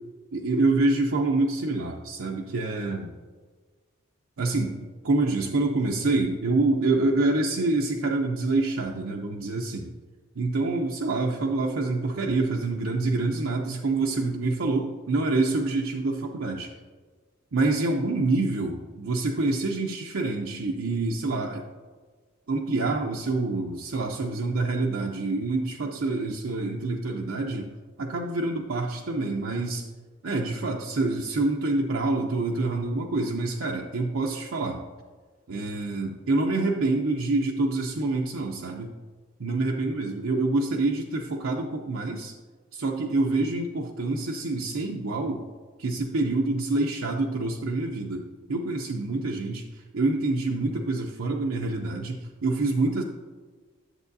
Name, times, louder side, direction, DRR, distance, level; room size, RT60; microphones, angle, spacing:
voice 1, 0.3-3.1 4.4-4.7 5.0-9.9 10.4-16.7 17.5-21.7 22.5-27.7 28.0-29.9 30.2-34.8 35.5-38.9 39.4-42.3 42.7-45.4 45.8-53.0, right 2 dB, 70° right, 0 dB, 0.6 m, -26 dB
11.0 x 7.3 x 2.7 m, 1.4 s
head